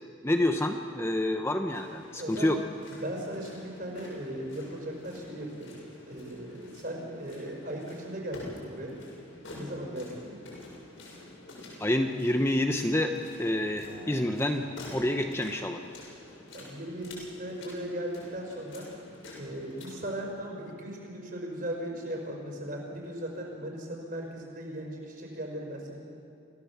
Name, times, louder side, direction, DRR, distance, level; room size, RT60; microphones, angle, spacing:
voice 1, 0.2-2.6 11.8-13.1 13.4-14.6 14.9-15.8, left 1 dB, 10° left, 5 dB, 0.8 m, -28 dB
sound 1, 1.7-20.2, left 2 dB, 75° left, 7.2 m, -48 dB
voice 2, 2.2-2.6 3.0-5.8 6.1-9.0 9.5-10.4 16.5-18.9 19.4-26.0, right 1 dB, 45° right, 0 dB, 5.3 m, -37 dB
Acoustic guitar, 13.8-17.1, right 1 dB, 65° right, 2.5 m, -53 dB
28.0 x 17.0 x 7.3 m, 2.7 s
head